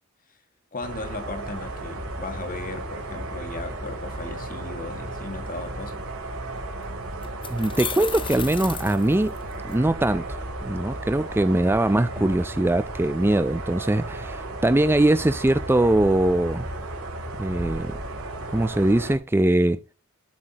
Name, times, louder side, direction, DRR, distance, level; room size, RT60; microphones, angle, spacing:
voice 1, 0.7-6.1, left 2 dB, 40° left, 2.0 m, -36 dB
sound 1, 0.8-19.2, right 2 dB, 70° right, 4.3 m, -34 dB
sound 2, 6.6-6.7 7.2-9.7, left 6 dB, 25° left, 1.2 m, -34 dB
voice 2, 7.5-9.3 9.7-16.7 17.4-18.0 18.5-19.8, right 1 dB, 10° right, 0.4 m, -22 dB
18.0 x 7.5 x 2.9 m
head